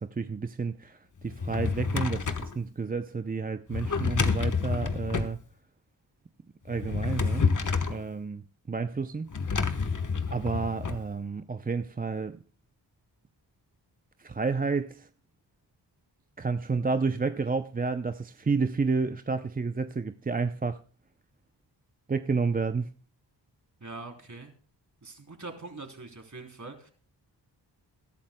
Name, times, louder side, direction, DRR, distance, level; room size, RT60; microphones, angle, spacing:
voice 1, 0.0-5.4 6.7-7.5 7.9-9.3 9.9-12.4 14.2-15.1 16.4-20.8 22.1-22.9, right 4 dB, 20° right, 0.5 m, -30 dB
Drawer open or close, 1.2-2.6 3.7-5.4 6.7-8.0 9.3-11.0, left 5 dB, 45° left, 1.2 m, -29 dB
voice 2, 23.8-24.5 25.0-26.9, right 3 dB, 40° right, 3.4 m, -43 dB
22.0 x 11.5 x 2.2 m
cardioid pair, 65°, 43 cm